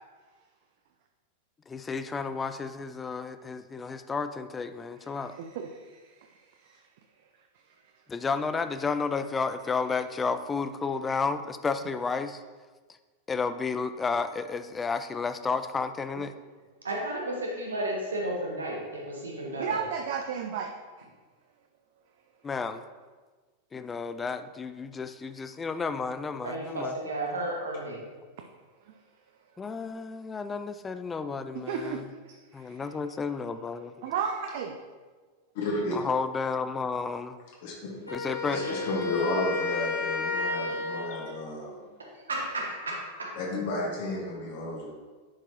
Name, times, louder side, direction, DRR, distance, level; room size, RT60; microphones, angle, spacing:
voice 1, 1.7-5.4 8.1-12.4 13.3-16.3 22.4-22.8 23.7-27.0 29.6-32.0 32.5-33.9 35.9-37.4 38.1-38.7, left 4 dB, 15° left, 10 dB, 0.4 m, -32 dB
voice 2, 5.0-6.9 7.2-7.8 16.2-16.3 19.6-20.7 21.0-21.1 28.8-29.0 31.5-33.0 34.0-34.8, right 7 dB, 50° right, 4 dB, 0.5 m, -35 dB
voice 3, 16.8-19.8 26.4-28.0 38.5-38.8 42.0-43.3, right 1 dB, 70° right, -1 dB, 1.5 m, -33 dB
voice 4, 35.5-35.9 37.6-37.9 38.5-41.8 43.4-44.9, left 1 dB, 50° left, -3 dB, 1.5 m, -32 dB
Wind instrument woodwind instrument, 38.0-41.4, left 4 dB, 90° left, 1.2 m, -32 dB
10.0 x 4.5 x 3.0 m, 1.4 s
figure-of-eight pair, 90°, 0 cm